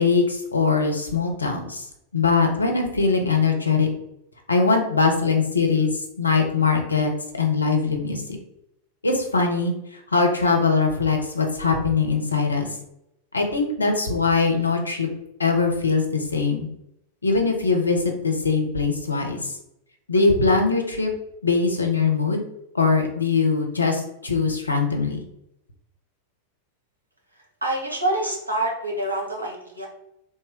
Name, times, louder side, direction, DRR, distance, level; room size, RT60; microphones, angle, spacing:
voice 1, 0.0-1.8 2.1-3.9 4.5-7.1 7.4-8.4 9.0-12.7 13.3-15.1 15.4-16.7 17.2-19.6 20.1-21.1 21.4-22.4 22.7-25.2, left 4 dB, 80° left, 3 dB, 0.6 m, -21 dB
voice 2, 27.6-29.9, right 1 dB, 85° right, -1 dB, 0.9 m, -26 dB
3.2 x 2.1 x 3.4 m, 0.80 s
figure-of-eight pair, 90°, 0 cm